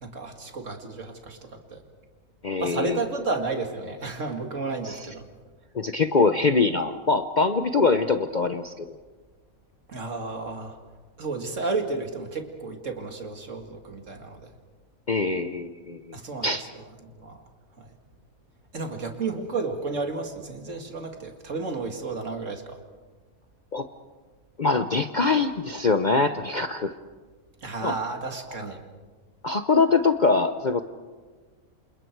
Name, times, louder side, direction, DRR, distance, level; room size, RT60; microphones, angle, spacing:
voice 1, 0.0-1.8 2.6-5.2 9.9-10.8 11.2-14.5 16.1-17.4 17.8-17.9 18.7-22.8 27.6-28.8, right 3 dB, 60° right, 4 dB, 2.5 m, -32 dB
voice 2, 2.4-3.0 4.8-5.0 5.7-8.9 15.1-16.2 16.4-16.6 23.7-23.9 24.6-26.9 27.8-27.9 29.4-30.8, left 4 dB, 40° left, 8 dB, 0.7 m, -23 dB
28.0 x 28.0 x 4.6 m, 1.4 s
omnidirectional pair, 1.5 m